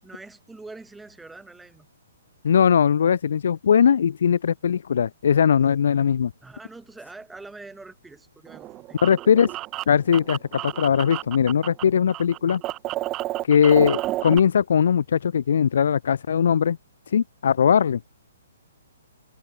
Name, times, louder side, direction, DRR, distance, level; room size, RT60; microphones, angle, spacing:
voice 1, 0.0-1.9 6.4-9.0, right 3 dB, 5° right, 7.2 m, -44 dB
voice 2, 2.4-6.3 9.0-9.5 9.9-12.6 13.5-16.8 17.1-18.1, left 7 dB, 60° left, 0.8 m, -20 dB
sound 1, 8.5-11.8 12.1-14.4, right 16 dB, 25° right, 2.4 m, -31 dB
figure-of-eight pair, 125°, 0 cm